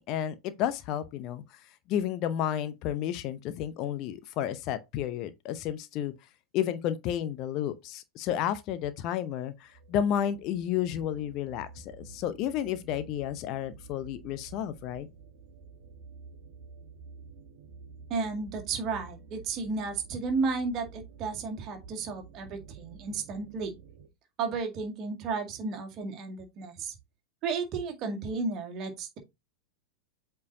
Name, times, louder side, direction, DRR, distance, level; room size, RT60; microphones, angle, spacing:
voice 1, 0.1-6.1 6.5-15.1, left 10 dB, 40° left, 0.7 m, -32 dB
sound 1, 9.7-24.1, right 5 dB, 55° right, 1.0 m, -50 dB
voice 2, 18.1-23.7 24.4-27.0 27.4-29.2, right 4 dB, 35° right, 2.0 m, -33 dB
8.3 x 4.5 x 2.7 m
figure-of-eight pair, 90°, 0 cm